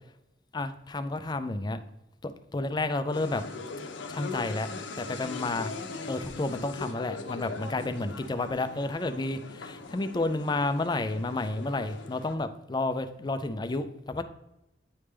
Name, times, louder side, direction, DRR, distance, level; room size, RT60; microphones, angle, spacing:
voice 1, 0.5-1.8 2.2-3.5 4.1-4.7 5.0-5.7 6.1-14.2, left 2 dB, 25° left, 9 dB, 0.4 m, -31 dB
sound 1, 3.1-12.4, left 4 dB, 80° left, 0.7 m, -40 dB
9.6 x 3.4 x 3.2 m, 0.89 s
head